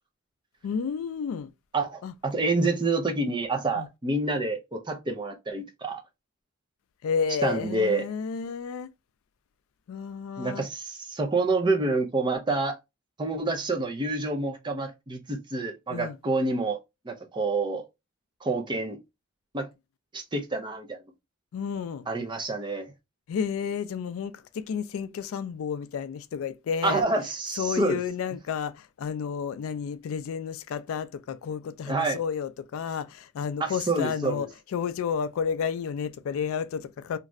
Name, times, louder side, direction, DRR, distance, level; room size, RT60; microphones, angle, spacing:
voice 1, 0.6-1.5 2.0-2.1 3.8-3.9 7.0-8.9 9.9-10.7 15.9-16.2 21.5-22.1 23.3-27.0 27.6-37.2, left 6 dB, 65° left, 0.3 m, -31 dB
voice 2, 1.7-6.0 7.4-8.1 10.4-12.8 13.2-16.8 17.1-17.9 18.4-19.0 19.5-19.7 20.1-21.0 22.1-22.9 26.8-28.0 31.8-32.2 33.6-34.5, right 3 dB, 20° right, 0.5 m, -28 dB
2.6 x 2.4 x 3.0 m
head